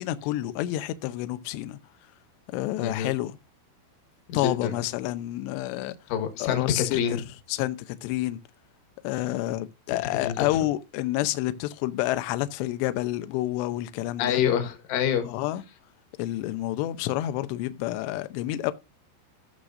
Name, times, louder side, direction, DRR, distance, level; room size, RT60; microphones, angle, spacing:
voice 1, 0.0-1.8 2.5-3.4 4.3-6.0 6.4-8.4 9.0-14.4 15.3-15.6 16.2-18.7, left 15 dB, 90° left, 2.4 m, -29 dB
voice 2, 2.8-3.1 4.3-4.8 6.1-7.2 10.2-10.5 14.2-15.3, left 9 dB, 70° left, 3.8 m, -27 dB
16.0 x 6.4 x 2.6 m
omnidirectional pair, 5.9 m